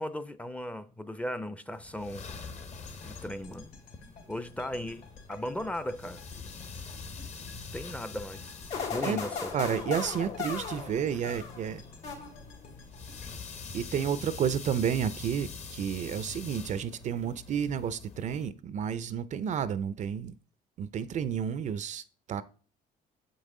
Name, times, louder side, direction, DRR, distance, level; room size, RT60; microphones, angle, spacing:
voice 1, 0.0-2.3 3.0-3.7 4.3-6.2 7.7-8.6 8.9-9.5, left 1 dB, 10° left, 0.5 m, -37 dB
sound 1, 1.7-18.5, left 5 dB, 40° left, 0.8 m, -45 dB
sound 2, 2.3-14.5, left 3 dB, 70° left, 2.4 m, -54 dB
sound 3, 8.7-11.7 12.0-12.7, left 6 dB, 85° left, 2.5 m, -36 dB
voice 2, 9.5-11.8 13.7-20.4 20.8-22.4, right 8 dB, 45° right, 0.4 m, -31 dB
7.7 x 5.4 x 3.7 m
cardioid pair, 110°, 17 cm